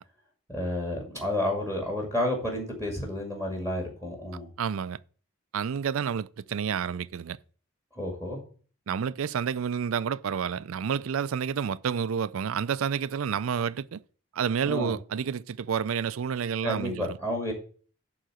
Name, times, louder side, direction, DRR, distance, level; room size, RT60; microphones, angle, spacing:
voice 1, 0.5-4.5 8.0-8.4 14.6-14.9 16.6-17.5, left 1 dB, 15° left, 2.1 m, -30 dB
voice 2, 4.6-5.0 5.5-7.4 8.9-14.0 14.3-17.2, right 7 dB, 75° right, 0.4 m, -29 dB
11.0 x 3.9 x 7.7 m
head